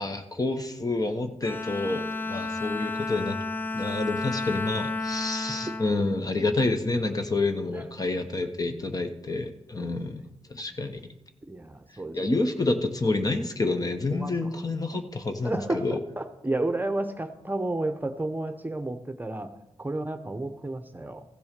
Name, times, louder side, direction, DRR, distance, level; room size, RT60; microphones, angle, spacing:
voice 1, 0.0-3.4 3.7-10.2 10.5-11.0 12.1-16.0, left 2 dB, 35° left, 7 dB, 1.0 m, -28 dB
Bowed string instrument, 1.4-6.9, left 2 dB, 15° left, 0.6 m, -32 dB
voice 2, 11.5-12.5 14.1-14.5 15.4-19.5 19.8-21.2, right 2 dB, 15° right, 8 dB, 0.9 m, -32 dB
15.0 x 6.9 x 5.2 m, 0.98 s
cardioid pair, 70°, 11 cm